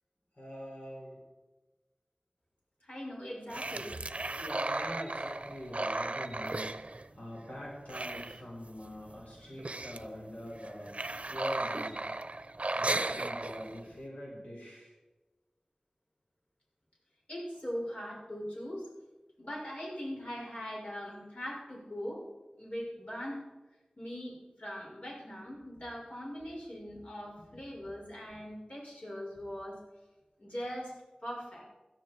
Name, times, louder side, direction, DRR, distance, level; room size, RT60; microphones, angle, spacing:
voice 1, 0.3-1.2 4.4-11.0 11.3-12.0 12.7-14.9, equal, 75° left, -4 dB, 5.4 m, -44 dB
voice 2, 2.8-4.0 17.3-18.9 19.4-22.2 22.6-23.4 24.0-29.8 30.4-30.9 31.2-31.6, equal, 60° left, -4 dB, 6.4 m, -41 dB
sound 1, 3.5-7.5 7.8-8.9 9.1-9.2 9.5-10.1 10.6-13.9, right 2 dB, 60° right, 0.8 m, -36 dB
17.0 x 13.0 x 4.7 m, 1.1 s
wide cardioid pair, 50°, 2 cm